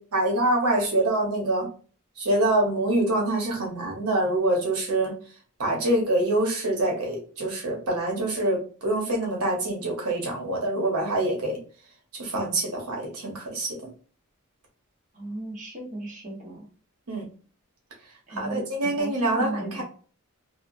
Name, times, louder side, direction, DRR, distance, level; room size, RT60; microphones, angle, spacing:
voice 1, 0.0-1.7 2.2-5.2 5.6-11.6 12.2-13.8 17.1-17.2 18.3-19.8, right 1 dB, 85° right, 0 dB, 0.9 m, -25 dB
voice 2, 15.1-16.6 18.3-19.8, right 1 dB, 35° right, -3 dB, 1.0 m, -36 dB
2.8 x 2.1 x 2.5 m, 0.39 s
head